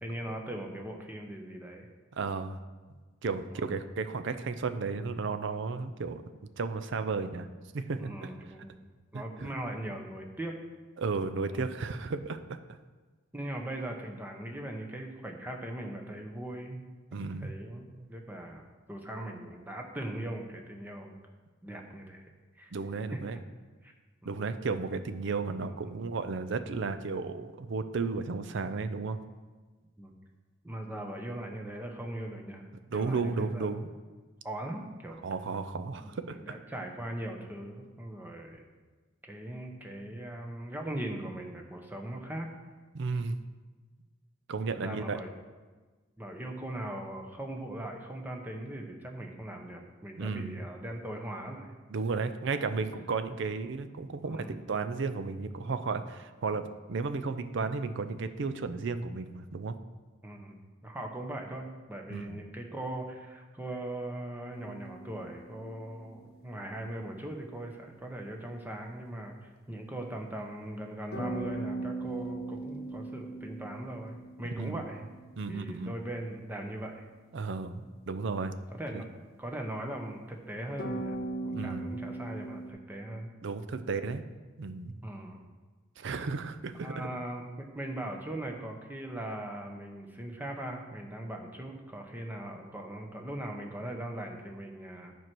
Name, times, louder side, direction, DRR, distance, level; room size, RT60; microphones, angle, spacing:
voice 1, 0.0-1.9 3.5-3.7 8.0-8.7 9.1-10.6 11.5-11.7 13.3-16.8 17.1-21.2 21.6-22.2 22.6-22.7 23.1-23.2 23.8-23.9 24.2-24.4 25.7-25.8 30.0-30.2 30.6-33.8 34.4-35.2 36.0-38.7 39.2-42.5 44.8-45.3 46.2-51.7 54.3-54.5 60.2-60.6 60.8-69.4 69.7-75.1 75.5-77.0 78.7-79.1 79.4-81.2 81.4-83.3 85.0-85.4 86.8-95.1, right 1 dB, 10° right, 2 dB, 0.9 m, -40 dB
voice 2, 2.1-2.6 3.2-6.2 6.6-7.5 7.7-8.3 9.1-9.5 11.0-12.8 17.1-17.5 22.7-23.4 24.2-29.2 32.9-33.9 35.2-36.6 42.9-43.4 44.5-45.2 50.2-50.6 51.9-59.8 62.1-62.4 74.6-74.8 75.4-75.9 77.3-78.5 78.9-79.0 81.5-81.8 83.4-84.2 84.6-85.0 86.0-87.1, right 4 dB, 65° right, 10 dB, 0.5 m, -34 dB
sound 1, 64.5-66.8 71.1-75.9 80.8-82.7, right 2 dB, 55° left, 0.9 m, -39 dB
9.3 x 4.5 x 6.1 m, 1.3 s
head